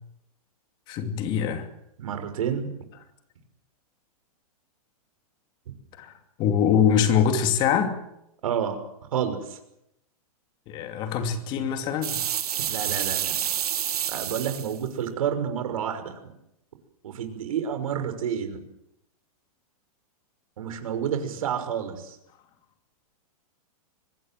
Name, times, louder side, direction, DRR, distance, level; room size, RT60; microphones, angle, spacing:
voice 1, 0.9-1.7 6.0-6.1 6.4-8.0 10.7-12.2, left 8 dB, 25° left, 2.8 m, -23 dB
voice 2, 2.0-2.7 5.7-5.8 8.4-8.8 9.1-9.6 12.7-13.3 14.1-16.3 17.0-18.7 20.6-22.2, right 8 dB, 65° right, 5.9 m, -29 dB
sound 1, 12.0-14.8, right 10 dB, 90° right, 1.8 m, -28 dB
25.0 x 21.0 x 7.7 m
supercardioid pair, 170°, 19 cm